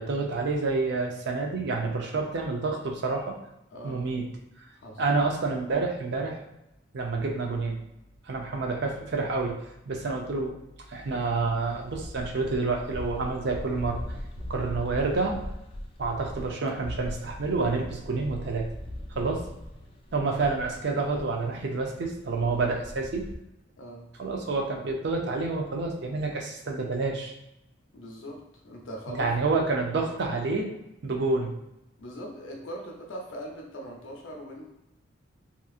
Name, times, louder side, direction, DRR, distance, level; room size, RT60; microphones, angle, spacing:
voice 1, 0.0-3.4 3.8-4.3 5.0-6.4 6.9-7.8 8.3-10.6 10.9-14.0 14.5-15.4 16.0-18.7 19.1-19.5 20.1-23.3 24.2-27.3 29.1-30.7 31.0-31.6, right 3 dB, 60° right, 1 dB, 0.5 m, -28 dB
voice 2, 3.7-4.1 4.8-5.0 23.8-24.1 27.9-29.3 32.0-34.7, equal, 85° left, 0 dB, 0.7 m, -41 dB
sound 1, 10.8-23.3, equal, 30° left, 0.3 m, -40 dB
2.9 x 2.4 x 2.4 m, 0.86 s
head